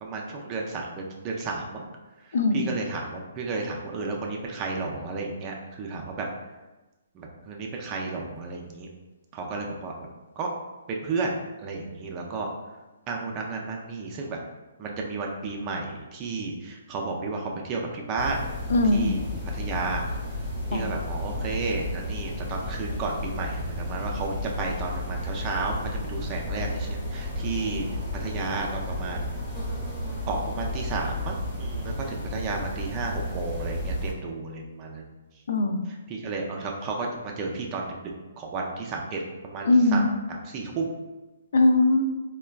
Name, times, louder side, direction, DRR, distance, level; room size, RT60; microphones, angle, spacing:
voice 1, 0.0-1.9 2.5-6.3 7.1-8.9 9.3-10.1 10.4-10.5 10.9-12.5 13.1-14.4 14.8-18.5 18.9-19.2 19.5-20.0 20.7-27.8 28.2-29.4 30.3-35.1 35.9-38.1 38.4-40.0 40.3-40.9, right 3 dB, 25° right, 0 dB, 0.3 m, -32 dB
voice 2, 2.3-2.7 18.7-19.1 20.7-20.9 35.5-35.8 39.7-40.1 41.5-42.0, left 2 dB, 70° left, 5 dB, 0.3 m, -20 dB
sound 1, 18.2-34.1, left 1 dB, 5° left, 0.9 m, -32 dB
3.3 x 2.1 x 2.3 m, 1.1 s
hypercardioid pair, 160°, 0 cm